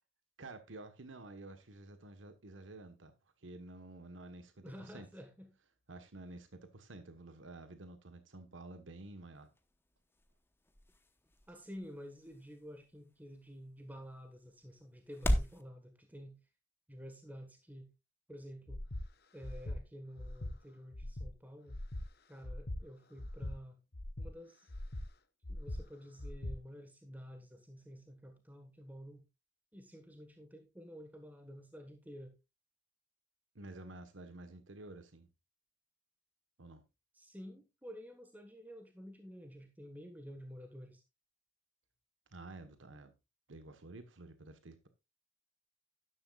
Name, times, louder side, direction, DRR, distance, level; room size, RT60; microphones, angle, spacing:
voice 1, 0.4-5.1 5.9-9.5 33.5-35.3 36.6-36.8 42.3-43.1 43.5-44.9, right 2 dB, 85° right, 1.2 m, -51 dB
voice 2, 4.6-5.5 11.5-16.4 16.9-17.9 18.3-18.8 19.3-21.8 22.3-23.8 24.2-24.7 25.5-29.2 29.7-32.4 37.1-41.0, equal, 10° right, 1.4 m, -51 dB
sound 1, 9.3-15.6, equal, 10° left, 1.0 m, -40 dB
Breathing, 18.7-19.0 19.4-19.8 20.2-20.5 20.9-21.3 21.7-22.0 22.4-22.8 23.2-23.5 23.9-24.3 24.7-25.0 25.4-25.8 26.2-26.5, left 1 dB, 55° left, 1.0 m, -41 dB
12.5 x 11.0 x 2.4 m
head